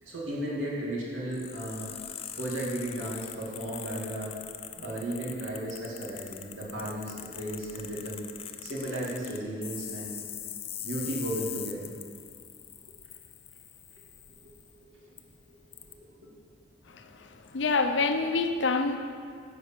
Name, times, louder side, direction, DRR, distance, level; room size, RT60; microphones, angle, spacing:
voice 1, 0.0-1.9 2.4-4.3 4.8-8.2 8.6-10.2 10.8-12.0 14.4-14.5 14.8-15.1 15.5-15.6 15.8-16.4, right 1 dB, 90° right, -4 dB, 2.3 m, -35 dB
sound 1, 1.3-14.7 15.2-15.3 15.7-15.9, left 10 dB, 30° left, 0.4 m, -42 dB
voice 2, 17.5-19.0, left 4 dB, 70° left, 7 dB, 0.7 m, -25 dB
9.7 x 4.9 x 7.3 m, 2.1 s
head